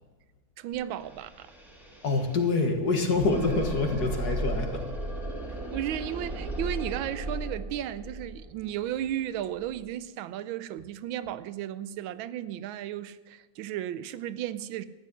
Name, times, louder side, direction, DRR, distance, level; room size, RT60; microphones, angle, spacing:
voice 1, 0.6-1.5 5.5-14.9, right 11 dB, 85° right, 1.4 m, -34 dB
sound 1, 0.7-0.8 1.0-9.8, right 1 dB, ahead, 1.9 m, -36 dB
voice 2, 2.0-4.8, left 3 dB, 55° left, 2.1 m, -26 dB
13.5 x 9.8 x 6.3 m
omnidirectional pair, 2.1 m